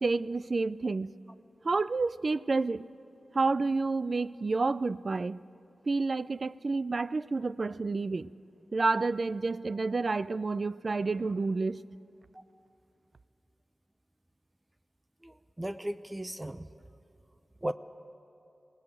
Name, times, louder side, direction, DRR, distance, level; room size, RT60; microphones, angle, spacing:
voice 1, 0.0-1.1 1.6-2.8 3.3-5.4 5.9-8.3 8.7-11.8, right 3 dB, 55° right, 0.4 m, -29 dB
voice 2, 15.2-16.7 17.6-17.7, right 1 dB, 20° right, 0.7 m, -36 dB
21.0 x 17.0 x 7.7 m
cardioid pair, 50°, 0 cm